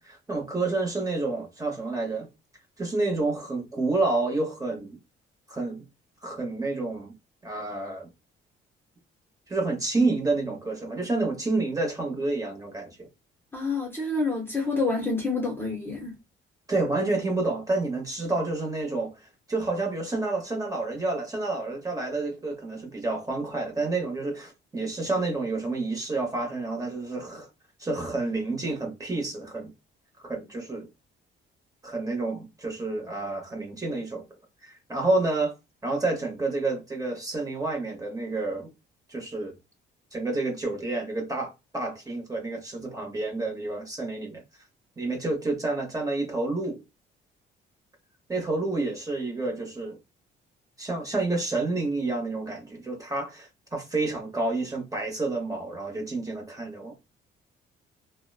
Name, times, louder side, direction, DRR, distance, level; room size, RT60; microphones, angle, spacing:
voice 1, 0.0-2.3 2.8-5.0 5.5-5.9 6.2-7.1 7.4-8.1 9.5-13.1 16.7-19.1 19.5-27.5 27.8-29.7 30.2-30.9 31.8-34.2 34.6-35.5 35.8-38.7 39.1-39.5 40.1-44.4 45.0-46.8 48.3-50.0 50.8-56.9, right 2 dB, 15° right, 1.1 m, -29 dB
voice 2, 13.5-16.1, left 3 dB, 10° left, 0.9 m, -28 dB
2.8 x 2.2 x 2.3 m
cardioid pair, 80°, 21 cm